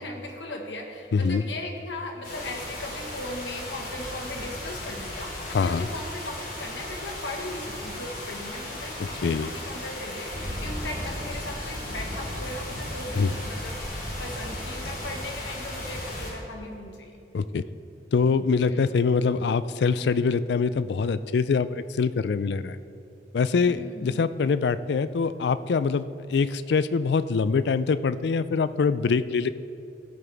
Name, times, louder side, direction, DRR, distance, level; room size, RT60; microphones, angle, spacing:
voice 1, 0.0-13.7 14.2-17.1 18.7-18.8 23.6-24.2, left 1 dB, 90° left, 2 dB, 1.4 m, -38 dB
voice 2, 1.1-1.4 5.5-5.9 9.0-9.5 13.2-13.3 17.3-17.6 18.1-22.8 23.3-29.5, left 5 dB, 75° left, 14 dB, 0.4 m, -24 dB
sound 1, 2.2-16.3, left 1 dB, 45° left, 2.8 m, -35 dB
15.5 x 8.6 x 3.4 m, 2.7 s
head